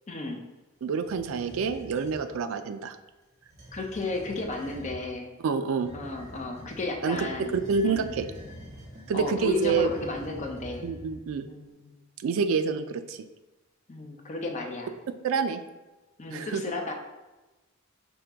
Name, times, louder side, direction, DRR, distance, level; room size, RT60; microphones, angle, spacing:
voice 1, 0.1-0.4 3.7-5.3 5.9-7.5 7.8-8.2 9.1-10.9 11.5-11.9 13.9-14.9 16.2-16.9, left 2 dB, 30° left, 2 dB, 0.5 m, -33 dB
voice 2, 0.8-3.0 5.4-5.9 7.0-7.2 7.5-8.3 9.1-9.9 10.8-11.5 12.2-13.2 15.2-15.6 16.3-16.6, right 5 dB, 65° right, 10 dB, 0.3 m, -27 dB
sound 1, 1.0-2.2 3.4-5.0 5.8-11.3, equal, 35° right, 1.0 m, -45 dB
5.3 x 2.8 x 3.4 m, 1.1 s
head